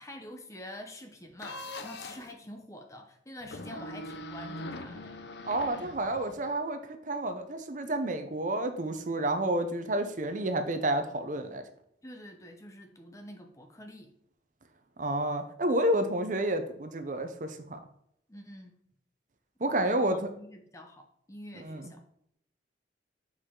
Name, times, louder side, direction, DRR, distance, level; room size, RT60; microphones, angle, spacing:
voice 1, 0.0-5.2 12.0-14.1 18.3-18.8 19.8-22.0, left 1 dB, 15° left, 4 dB, 0.7 m, -47 dB
sound 1, 1.4-2.3 3.4-6.5, left 2 dB, 65° left, 0.6 m, -42 dB
voice 2, 5.5-6.8 7.1-11.6 15.0-17.8 19.6-20.3 21.6-21.9, right 1 dB, 45° right, 8 dB, 0.6 m, -30 dB
6.7 x 4.7 x 3.7 m, 0.71 s
head